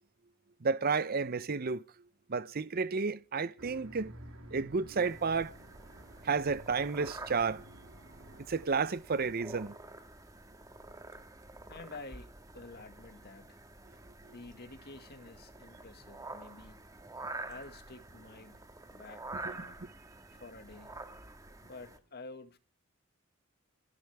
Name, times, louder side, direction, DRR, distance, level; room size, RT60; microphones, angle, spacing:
voice 1, 0.6-1.8 2.3-4.1 4.5-5.5 6.2-7.7 8.5-9.7 19.4-19.5, right 4 dB, 45° right, 0.7 m, -31 dB
sound 1, 3.6-8.6, right 1 dB, 80° right, 3.6 m, -52 dB
sound 2, 5.0-22.0, right 2 dB, 15° right, 1.8 m, -48 dB
sound 3, 11.6-12.1 12.7-13.2 13.9-14.3 14.9-15.3 16.0-16.4 17.0-17.4 18.1-18.4, equal, ahead, 5.2 m, -65 dB
voice 2, 11.7-13.6 14.3-16.8 17.5-18.6 18.9-19.9 20.3-21.0 21.6-22.6, left 3 dB, 50° left, 1.9 m, -50 dB
27.0 x 12.5 x 3.5 m
head